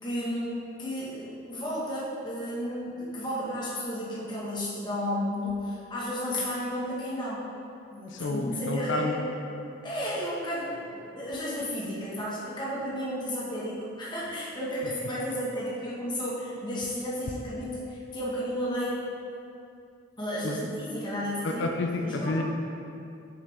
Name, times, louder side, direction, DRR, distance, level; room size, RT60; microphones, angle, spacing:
voice 1, 0.0-7.5 7.9-9.2 9.8-19.0 20.2-21.6 22.0-22.4, equal, 20° left, -7 dB, 1.3 m, -33 dB
voice 2, 8.1-9.2 20.4-20.6 21.4-22.4, left 2 dB, 60° left, 3 dB, 0.5 m, -29 dB
6.5 x 5.8 x 3.4 m, 2.5 s
head